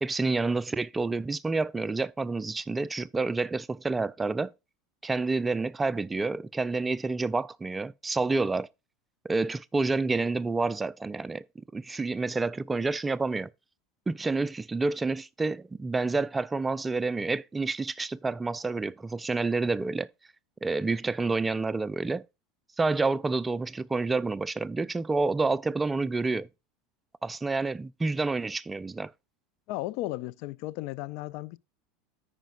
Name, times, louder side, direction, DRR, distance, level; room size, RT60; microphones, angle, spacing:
voice 1, 0.0-4.5 5.0-8.7 9.2-11.4 11.7-13.5 14.1-20.1 20.6-22.2 22.8-26.5 27.2-29.1, right 3 dB, 15° right, 0.4 m, -28 dB
voice 2, 29.7-31.6, left 17 dB, 60° left, 0.4 m, -35 dB
14.0 x 5.1 x 2.4 m
hypercardioid pair, 85°, 0 cm